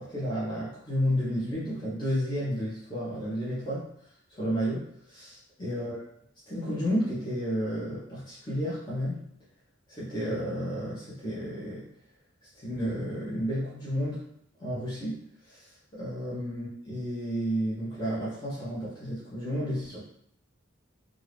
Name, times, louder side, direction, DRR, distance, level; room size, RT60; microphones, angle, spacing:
voice 1, 0.0-3.9 4.4-6.0 6.5-9.2 9.9-11.9 12.6-14.2 14.6-15.2 15.5-20.0, equal, 20° left, -10 dB, 0.9 m, -32 dB
2.7 x 2.4 x 3.3 m, 0.69 s
head